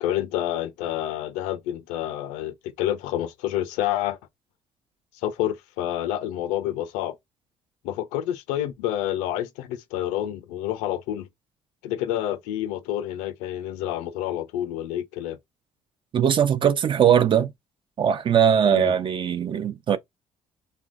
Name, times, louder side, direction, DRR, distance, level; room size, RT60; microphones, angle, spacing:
voice 1, 0.0-4.2 5.2-7.2 7.8-11.3 11.8-15.4 18.6-18.9, left 12 dB, 85° left, 0.4 m, -28 dB
voice 2, 16.1-17.5 18.0-20.0, right 8 dB, 45° right, 0.5 m, -20 dB
3.1 x 2.2 x 2.5 m
supercardioid pair, 65°, 12 cm